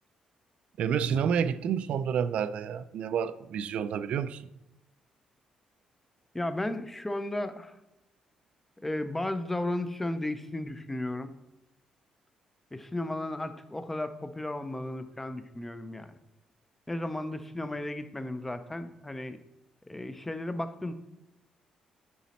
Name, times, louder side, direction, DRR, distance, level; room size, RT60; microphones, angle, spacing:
voice 1, 0.8-4.4, right 7 dB, 60° right, 0.4 m, -29 dB
voice 2, 6.3-7.8 8.8-11.3 12.7-16.1 16.9-19.4 19.9-20.9, left 1 dB, 10° left, 0.4 m, -34 dB
10.0 x 4.1 x 4.2 m
cardioid pair, 160°, 2 cm